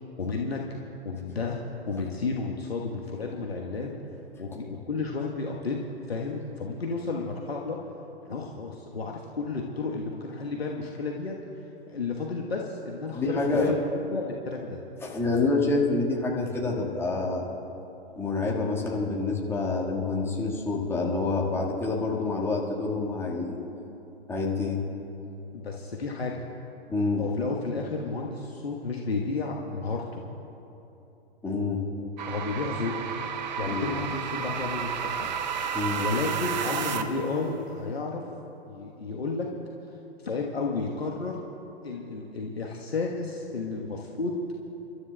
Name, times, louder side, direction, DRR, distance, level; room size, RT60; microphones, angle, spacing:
voice 1, 0.2-0.6 1.0-1.6 1.9-4.0 4.4-5.8 6.1-7.8 8.2-11.3 11.9-14.8 25.5-26.4 27.2-30.2 32.3-32.9 33.6-35.3 36.0-38.2 38.7-39.5 40.2-41.4 41.8-44.3, left 4 dB, 70° left, -1 dB, 1.3 m, -32 dB
voice 2, 13.1-13.7 15.0-17.5 18.2-23.6 24.3-24.8 26.9-27.2 31.4-31.8 33.7-34.0 35.7-36.0, left 3 dB, 10° left, -3 dB, 1.7 m, -27 dB
sound 1, 32.2-37.3, right 7 dB, 45° right, 0.8 m, -32 dB
29.0 x 13.0 x 2.3 m, 2.9 s
figure-of-eight pair, 110°, 31 cm